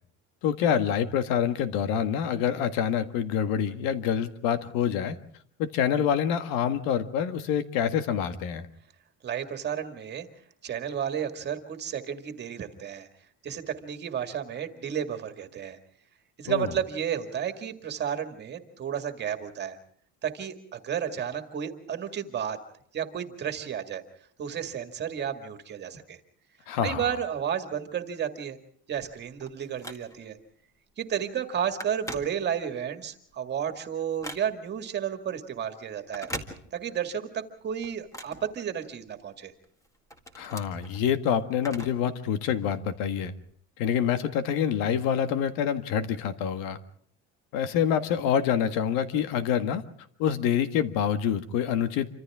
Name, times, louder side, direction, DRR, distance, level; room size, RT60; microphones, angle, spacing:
voice 1, 0.4-5.2 5.6-8.7 16.5-16.7 26.7-27.1 40.4-43.3 43.8-46.8 47.5-49.8 50.2-52.1, left 8 dB, 80° left, 10 dB, 1.8 m, -26 dB
voice 2, 9.2-10.3 10.6-13.1 13.4-15.8 16.4-19.8 20.2-22.6 22.9-24.0 24.4-26.2 26.8-28.6 28.9-30.4 31.0-36.3 36.7-39.5, right 8 dB, 30° right, 7 dB, 2.1 m, -32 dB
Telephone, 29.0-30.4 30.9-31.1 31.4-32.9 33.3-34.8 36.0-37.1 37.4-39.2 39.6-42.1 42.4-42.5 43.4-43.5, equal, 10° left, 1.9 m, -42 dB
27.5 x 25.5 x 3.6 m, 0.63 s
cardioid pair, 175°, 34 cm